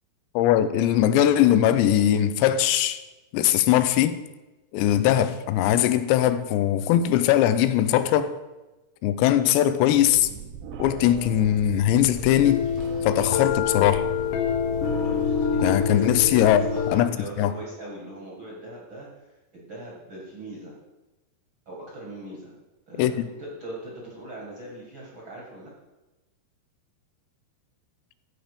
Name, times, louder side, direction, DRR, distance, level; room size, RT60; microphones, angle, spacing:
voice 1, 0.4-3.0 3.3-4.2 4.7-8.4 9.0-10.3 10.8-12.6 13.0-14.1 15.6-16.6 16.9-17.5 23.0-23.1, left 11 dB, 90° left, 2.9 m, -20 dB
sound 1, 9.9-16.8, right 8 dB, 80° right, 2.8 m, -42 dB
sound 2, 11.9-17.0, left 6 dB, 65° left, 2.4 m, -26 dB
voice 2, 14.8-16.5 16.9-19.1 19.5-20.7 21.6-22.6 22.9-25.7, right 1 dB, 45° right, 1.7 m, -40 dB
15.0 x 5.3 x 5.0 m
omnidirectional pair, 5.0 m